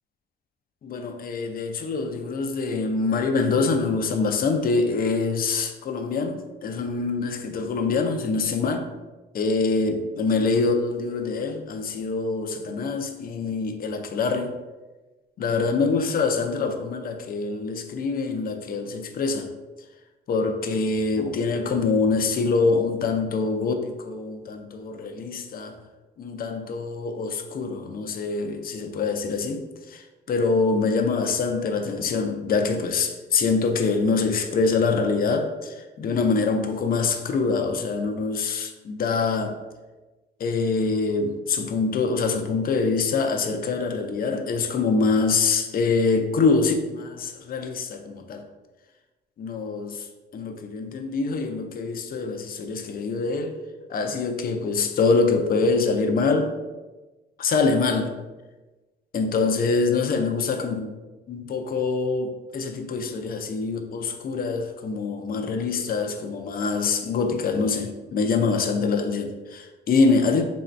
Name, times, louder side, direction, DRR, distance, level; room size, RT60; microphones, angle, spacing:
voice 1, 0.8-8.8 9.3-14.5 15.4-19.5 20.3-25.8 26.2-39.6 40.4-48.4 49.4-50.1 50.3-53.6 53.9-56.5 57.4-58.1 59.1-60.9 61.3-70.4, left 4 dB, 50° left, 0.5 m, -25 dB
3.1 x 2.7 x 4.4 m
cardioid pair, 80°, 19 cm